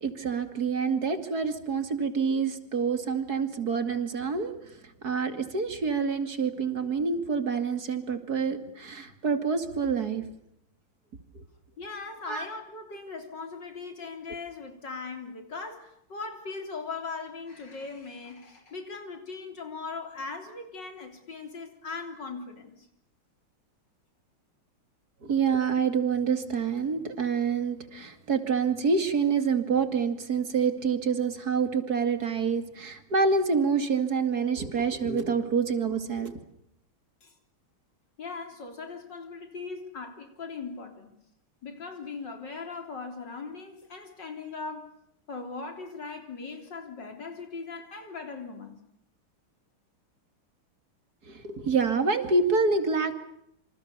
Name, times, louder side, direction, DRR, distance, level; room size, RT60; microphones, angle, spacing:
voice 1, 0.0-4.5 5.0-10.2 11.3-11.4 12.3-12.4 25.2-36.4 51.3-53.1, right 5 dB, 45° right, 8 dB, 2.9 m, -27 dB
voice 2, 11.8-22.9 37.2-37.3 38.2-41.2 41.6-44.9 45.3-48.8, left 4 dB, 55° left, 6 dB, 4.2 m, -39 dB
27.5 x 27.0 x 6.9 m, 0.75 s
omnidirectional pair, 2.4 m